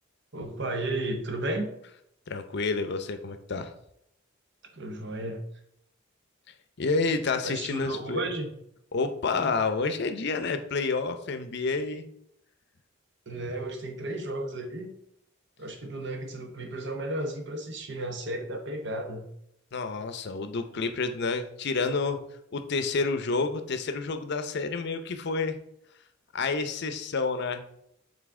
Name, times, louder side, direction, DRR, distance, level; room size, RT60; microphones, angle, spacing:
voice 1, 0.3-1.7 4.7-5.4 7.4-8.5 9.3-9.6 13.3-14.9 15.6-19.3, right 1 dB, 60° right, 4 dB, 0.9 m, -33 dB
voice 2, 2.3-3.7 6.8-8.2 8.9-12.0 19.7-22.2 22.5-25.6 26.3-27.6, left 4 dB, 55° left, 8 dB, 0.6 m, -29 dB
7.0 x 3.9 x 3.6 m, 0.74 s
head